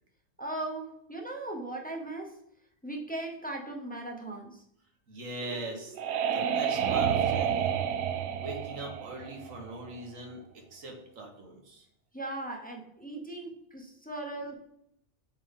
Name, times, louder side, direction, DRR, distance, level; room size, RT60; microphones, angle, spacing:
voice 1, 0.4-2.4 2.8-4.6 12.1-14.5, right 2 dB, 10° left, 1 dB, 0.6 m, -38 dB
voice 2, 5.1-6.0 6.3-7.8 8.4-11.9 13.4-13.5 14.4-14.5, right 1 dB, 90° right, 2 dB, 1.7 m, -41 dB
sound 1, 5.4-10.0, right 8 dB, 75° right, 0.9 m, -30 dB
7.5 x 3.7 x 3.6 m, 0.75 s
omnidirectional pair, 1.3 m